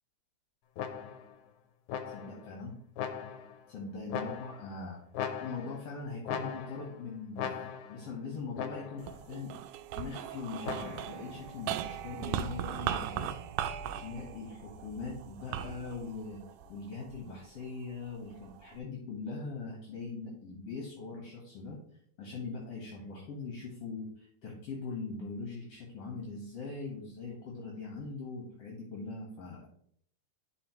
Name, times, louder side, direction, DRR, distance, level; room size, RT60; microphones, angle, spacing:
sound 1, 0.8-1.4 1.9-2.5 3.0-3.6 4.1-4.8 5.1-5.9 6.3-7.0 7.4-8.1 8.6-9.2 10.6-11.2, left 8 dB, 90° left, 2.1 m, -39 dB
voice 1, 2.1-2.8 3.7-5.0 5.4-9.5 10.0-13.3 13.9-16.4 16.7-21.8 22.2-29.7, left 4 dB, 55° left, -1 dB, 2.2 m, -41 dB
sound 2, 9.0-17.5 18.0-18.8, right 10 dB, 85° right, 2.0 m, -38 dB
11.0 x 4.9 x 3.0 m, 0.64 s
omnidirectional pair, 3.6 m